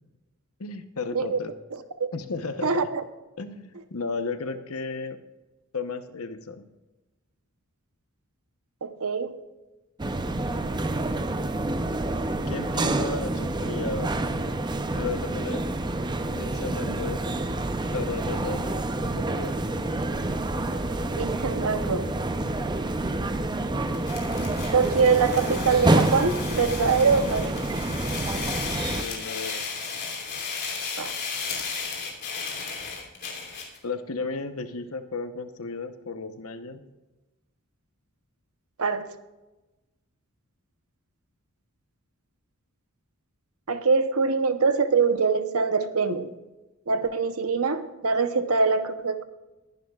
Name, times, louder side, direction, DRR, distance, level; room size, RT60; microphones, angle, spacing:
voice 1, 0.6-1.5 2.1-2.7 3.4-5.2 5.7-6.7 12.5-14.2 14.9-15.6 16.3-17.2 17.9-19.6 28.9-29.7 33.8-36.8, left 4 dB, 70° left, 9 dB, 1.0 m, -34 dB
voice 2, 2.6-3.0 8.8-9.3 21.1-22.1 24.7-27.7 31.0-31.2 38.8-39.1 43.7-46.3 46.9-49.2, right 4 dB, 75° right, 10 dB, 0.9 m, -24 dB
sound 1, 10.0-29.0, right 2 dB, 20° right, 0.6 m, -28 dB
sound 2, 23.9-33.8, left 5 dB, 50° left, 2.9 m, -34 dB
21.0 x 10.5 x 2.4 m, 1.1 s
head